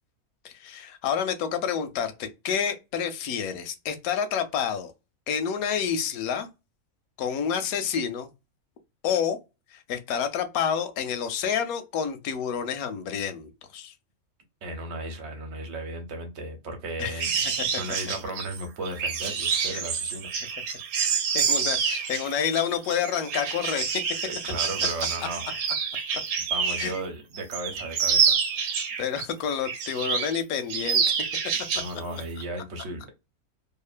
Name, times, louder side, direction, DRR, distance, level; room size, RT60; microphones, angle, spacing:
voice 1, 0.4-4.9 5.3-6.5 7.2-8.3 9.0-9.4 9.7-13.9 17.0-17.2 17.6-17.7 18.1-18.2 19.7-19.8 21.0-24.0 26.8-26.9 28.6-31.2, left 7 dB, 80° left, 1.0 m, -29 dB
voice 2, 14.6-20.6 24.2-25.6 26.5-28.3 31.8-33.1, right 2 dB, 55° right, 1.0 m, -35 dB
sound 1, 17.2-27.0 27.4-29.2 29.6-30.4 30.7-31.9 32.2-32.4, right 6 dB, 80° right, 1.0 m, -27 dB
2.8 x 2.4 x 2.4 m
omnidirectional pair, 1.5 m